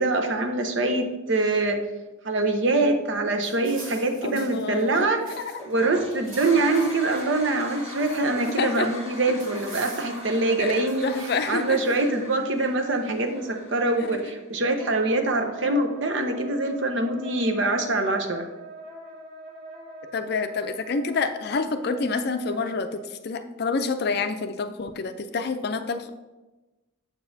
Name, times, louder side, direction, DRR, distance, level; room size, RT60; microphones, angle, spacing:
voice 1, 0.0-1.8 2.2-5.2 5.7-11.1 11.4-18.5, right 2 dB, 65° right, 5 dB, 0.7 m, -24 dB
sound 1, 3.4-5.7 6.0-7.2 7.6-8.8 9.4-10.4 10.9-12.0, right 2 dB, 90° right, 2.0 m, -45 dB
voice 2, 4.2-5.5 8.6-8.9 10.6-10.7 11.0-11.8 20.1-26.1, left 4 dB, 55° left, 9 dB, 0.4 m, -28 dB
Toilet flush, 5.5-14.4, equal, 30° right, 1.9 m, -41 dB
Wind instrument woodwind instrument, 14.8-23.0, right 1 dB, 5° right, 1.9 m, -43 dB
7.2 x 6.9 x 2.7 m, 1.1 s
head